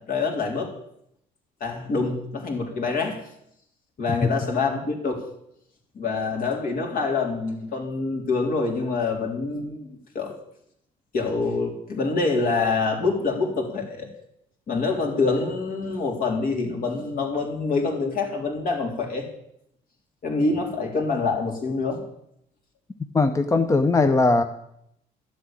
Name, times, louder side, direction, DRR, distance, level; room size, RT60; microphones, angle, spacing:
voice 1, 0.1-0.7 1.6-3.2 4.0-5.2 6.0-9.9 10.1-10.3 11.1-14.1 14.7-19.3 20.2-22.0, left 3 dB, 55° left, 1 dB, 3.8 m, -26 dB
voice 2, 23.1-24.4, left 3 dB, 20° left, 9 dB, 0.7 m, -19 dB
12.5 x 7.7 x 9.0 m, 0.75 s
cardioid pair, 110°, 17 cm